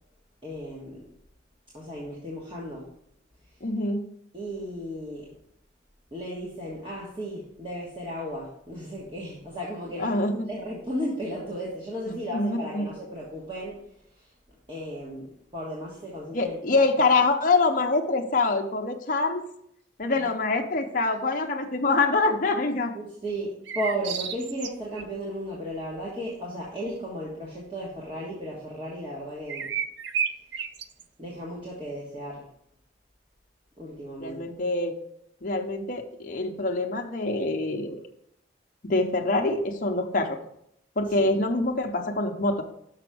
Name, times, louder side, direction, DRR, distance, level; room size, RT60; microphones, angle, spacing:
voice 1, 0.4-1.0 1.7-2.9 4.3-5.3 6.1-13.8 14.7-16.6 20.2-20.3 22.9-29.7 31.2-32.4 33.8-34.4 41.2-41.3, equal, 25° right, -5 dB, 1.4 m, -35 dB
voice 2, 3.6-4.1 10.0-10.5 12.1-12.9 16.3-19.4 20.0-22.9 34.2-35.0 35.4-38.0 38.8-40.4 41.0-42.6, left 3 dB, 45° left, 3 dB, 0.7 m, -25 dB
sound 1, 23.7-25.0 29.5-31.0, right 7 dB, 70° right, 0.5 m, -31 dB
6.0 x 5.7 x 4.9 m, 0.73 s
head